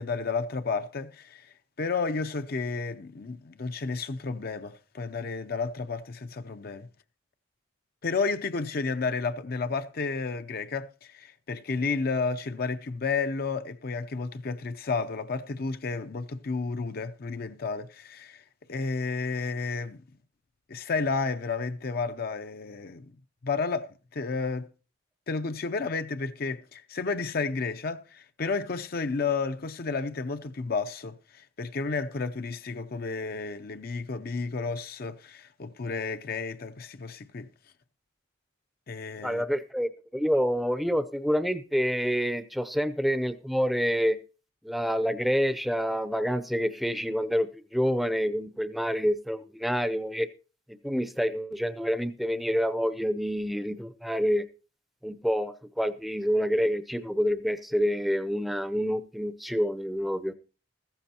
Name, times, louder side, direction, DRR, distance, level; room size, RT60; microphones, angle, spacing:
voice 1, 0.0-6.9 8.0-18.4 18.7-20.0 20.7-23.1 23.4-24.7 25.3-37.5 38.9-39.4, left 4 dB, 50° left, 0.5 m, -32 dB
voice 2, 39.2-44.2 44.6-50.3 50.7-54.5 55.0-60.3, equal, ahead, 0.6 m, -27 dB
14.5 x 14.5 x 2.9 m
head